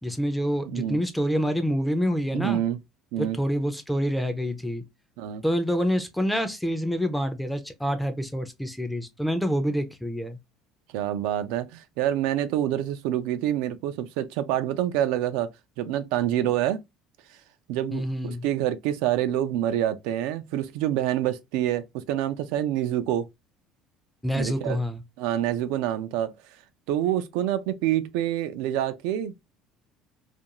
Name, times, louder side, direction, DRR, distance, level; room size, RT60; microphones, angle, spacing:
voice 1, 0.0-2.6 3.2-4.8 5.4-10.4 17.9-18.4 24.2-25.0, equal, 5° left, 0.4 m, -27 dB
voice 2, 0.7-1.0 2.3-2.8 3.1-3.4 5.2-5.4 10.9-15.5 15.8-16.8 17.7-23.3 24.4-24.8 25.2-26.3 26.9-29.4, right 12 dB, 80° right, 0.3 m, -27 dB
2.4 x 2.2 x 2.8 m
cardioid pair, 150°, 0 cm